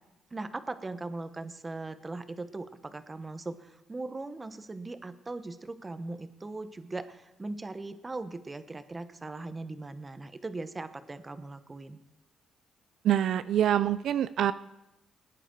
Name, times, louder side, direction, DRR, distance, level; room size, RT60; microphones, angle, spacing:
voice 1, 0.3-12.0, right 2 dB, 25° right, 11 dB, 1.0 m, -39 dB
voice 2, 13.0-14.5, right 10 dB, 75° right, 13 dB, 0.4 m, -25 dB
19.5 x 9.9 x 4.5 m, 0.98 s
cardioid pair, 90°, 0 cm